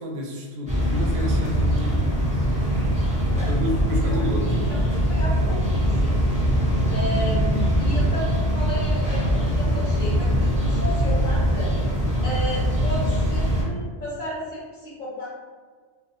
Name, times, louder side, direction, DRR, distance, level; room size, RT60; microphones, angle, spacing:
voice 1, 0.0-2.1 3.5-4.8, left 1 dB, 85° right, -1 dB, 0.9 m, -31 dB
sound 1, 0.7-13.6, equal, 10° right, 0.4 m, -22 dB
voice 2, 5.1-5.6 6.0-6.2 6.9-11.7 12.2-15.3, equal, 45° left, -7 dB, 0.8 m, -33 dB
2.6 x 2.0 x 2.5 m, 1.5 s
omnidirectional pair, 1.2 m